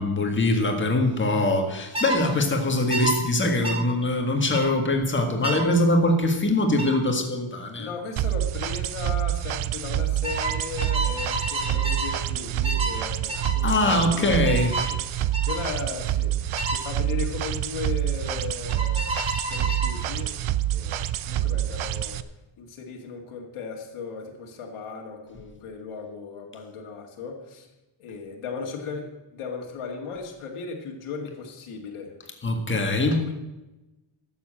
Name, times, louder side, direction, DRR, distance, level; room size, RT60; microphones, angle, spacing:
voice 1, 0.0-7.9 13.6-14.8 32.4-33.3, left 1 dB, 25° left, 3 dB, 1.7 m, -23 dB
sound 1, 1.9-2.2 2.9-3.2 3.6-3.8 4.5-4.7 5.4-5.7 6.8-7.0 8.4-8.7 9.0-9.3 10.2-12.2 12.6-13.0 13.3-13.6 14.4-14.9 15.3-15.6 16.6-16.8 18.7-20.0, right 2 dB, 10° right, 1.9 m, -30 dB
voice 2, 7.8-20.4 20.7-22.2 22.6-27.7 28.0-32.1 33.3-33.4, left 5 dB, 80° left, 1 dB, 2.0 m, -37 dB
sound 2, 8.2-22.2, right 13 dB, 70° right, 0.7 m, -27 dB
12.0 x 7.2 x 7.5 m, 1.0 s
wide cardioid pair, 165°, 50 cm